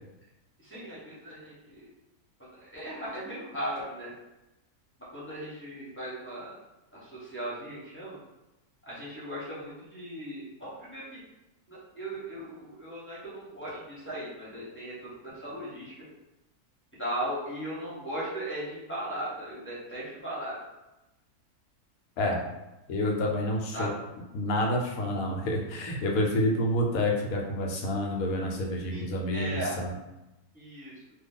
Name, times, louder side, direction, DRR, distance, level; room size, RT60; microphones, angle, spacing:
voice 1, 0.6-1.9 2.4-4.1 5.1-6.5 6.9-8.2 8.9-11.2 11.7-15.9 17.0-20.6 23.7-23.9 28.9-29.0 29.3-29.8 30.5-30.9, right 1 dB, 10° left, -10 dB, 0.9 m, -37 dB
voice 2, 22.9-23.9 24.3-29.9, left 1 dB, 75° left, 0 dB, 1.0 m, -28 dB
2.8 x 2.3 x 3.7 m, 0.97 s
omnidirectional pair, 1.6 m